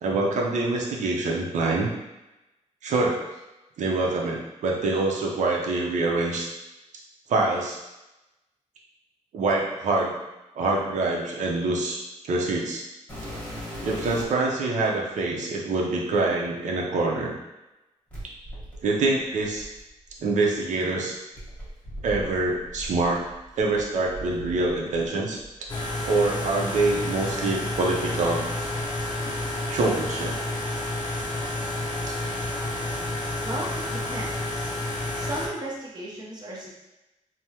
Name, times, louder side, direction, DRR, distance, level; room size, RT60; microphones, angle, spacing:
voice 1, 0.0-1.9 2.8-3.2 3.8-6.5 7.3-7.8 9.3-10.1 10.6-12.8 13.8-17.3 18.8-19.7 20.2-21.1 22.0-23.2 23.6-25.4 26.0-28.5 29.2-29.3 29.7-30.3, right 3 dB, 70° right, -1 dB, 0.6 m, -25 dB
sound 1, 13.1-14.5 15.3-15.4 18.1-20.2 21.3-25.1 25.4-26.4 27.2-27.3 27.9-28.0 28.7-29.8 30.1-30.6 31.9-32.0, equal, 10° left, 1.2 m, -40 dB
sound 2, 25.7-35.5, left 1 dB, 35° left, 0.6 m, -30 dB
voice 2, 33.4-34.7 35.1-36.7, right 1 dB, 35° right, -4 dB, 0.8 m, -35 dB
3.4 x 2.1 x 2.8 m, 0.98 s
wide cardioid pair, 125°, 13 cm